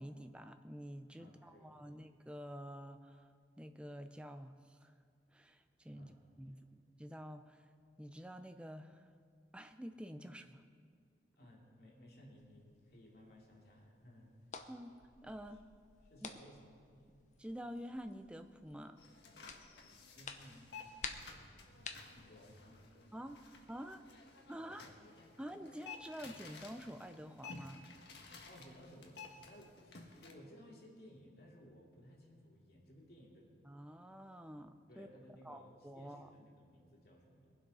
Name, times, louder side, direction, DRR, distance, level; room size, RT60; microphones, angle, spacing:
voice 1, 0.0-3.3 3.6-4.9 5.3-6.1 6.4-7.7 8.0-9.1 9.5-10.7 14.7-14.9 15.2-15.6 16.2-16.4 17.4-19.0 23.1-23.4 23.7-24.0 24.5-24.9 25.4-27.8 33.6-35.1 35.4-36.3, equal, 5° right, 8 dB, 0.5 m, -48 dB
voice 2, 1.2-2.0 5.9-6.2 6.6-6.7 11.4-14.4 16.0-17.2 20.2-21.0 21.3-22.9 24.5-25.0 28.4-33.5 34.9-37.6, equal, 55° left, -2 dB, 2.6 m, -59 dB
sound 1, 12.4-23.6, left 5 dB, 40° left, 0.7 m, -53 dB
sound 2, 19.0-30.3, left 4 dB, 75° left, 1.5 m, -54 dB
21.5 x 7.9 x 5.5 m, 2.1 s
head